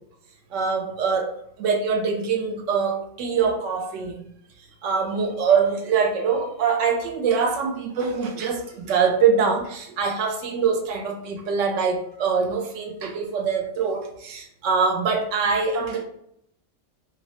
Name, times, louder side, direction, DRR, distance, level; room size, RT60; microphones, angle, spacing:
voice 1, 0.5-4.3 4.8-16.0, right 5 dB, 80° right, 3 dB, 0.9 m, -24 dB
2.5 x 2.1 x 2.8 m, 0.72 s
omnidirectional pair, 1.3 m